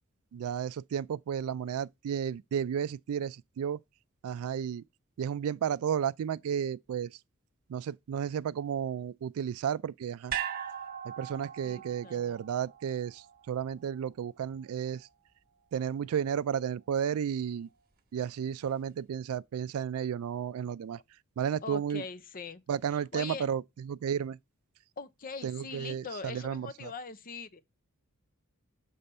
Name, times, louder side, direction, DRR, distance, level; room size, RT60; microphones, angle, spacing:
voice 1, 0.3-3.8 4.2-4.8 5.2-7.1 7.7-10.3 11.0-15.1 15.7-17.7 18.1-21.0 21.4-22.0 22.7-24.4 25.4-26.9, right 8 dB, 75° right, 0.3 m, -33 dB
sound 1, 10.3-14.6 15.0-15.1, right 9 dB, 45° right, 1.2 m, -40 dB
voice 2, 11.6-12.4 21.6-22.6 22.9-23.5 25.0-27.6, left 4 dB, 40° left, 0.6 m, -42 dB
6.8 x 3.3 x 5.4 m
head